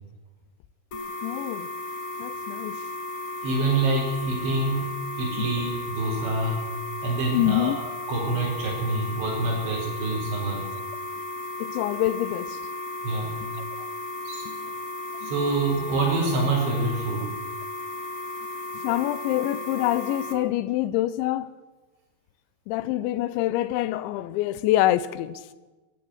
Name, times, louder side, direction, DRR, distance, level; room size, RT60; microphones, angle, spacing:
voice 1, 0.9-1.7 2.2-2.8 5.4-5.6 7.0-7.8 11.6-12.6 13.4-13.5 13.8-13.9 14.5-14.6 15.2-15.3 18.8-21.5 22.7-25.4, left 14 dB, 85° left, 3.2 m, -26 dB
sound 1, 0.9-20.3, left 2 dB, 40° left, 2.6 m, -35 dB
voice 2, 3.4-4.9 5.2-6.6 7.0-10.6 13.0-13.4 14.3-14.5 15.2-17.3, right 2 dB, 80° right, 7.0 m, -26 dB
24.0 x 14.0 x 7.9 m
omnidirectional pair, 5.1 m